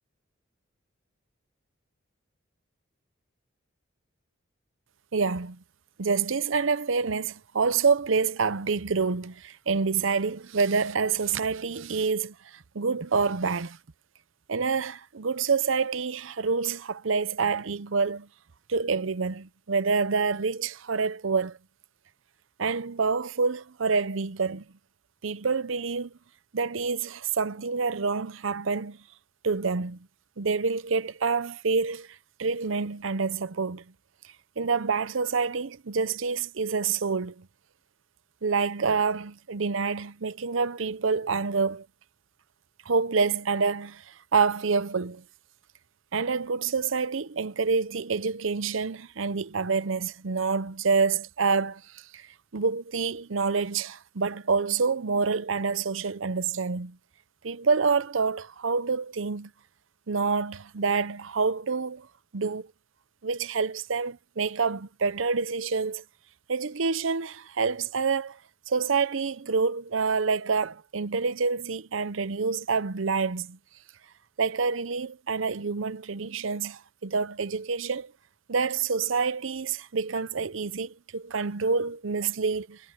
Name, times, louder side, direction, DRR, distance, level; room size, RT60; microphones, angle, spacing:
voice 1, 5.1-5.6 6.0-13.8 14.5-18.3 18.7-21.6 22.6-24.6 25.2-26.1 26.5-29.0 29.4-30.0 30.4-32.1 32.4-33.8 34.6-37.5 38.4-41.9 42.9-45.2 46.1-52.3 52.5-57.0 57.4-59.5 60.1-62.1 62.3-62.7 63.2-66.0 66.5-68.4 68.7-73.6 74.4-78.1 78.5-82.8, right 5 dB, 70° right, 0.7 m, -27 dB
head